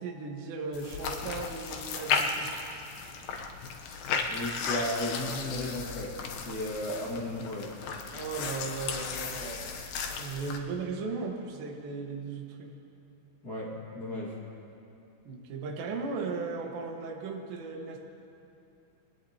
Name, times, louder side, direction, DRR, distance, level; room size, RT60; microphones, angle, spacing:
voice 1, 0.0-2.5 8.1-12.7 15.3-18.0, right 4 dB, 70° right, 1 dB, 3.5 m, -37 dB
sound 1, 0.7-10.6, left 5 dB, 80° left, 2.0 m, -35 dB
voice 2, 4.3-7.7 13.4-14.3, left 1 dB, 55° left, -7 dB, 1.0 m, -35 dB
23.5 x 19.0 x 2.9 m, 2.7 s
omnidirectional pair, 5.5 m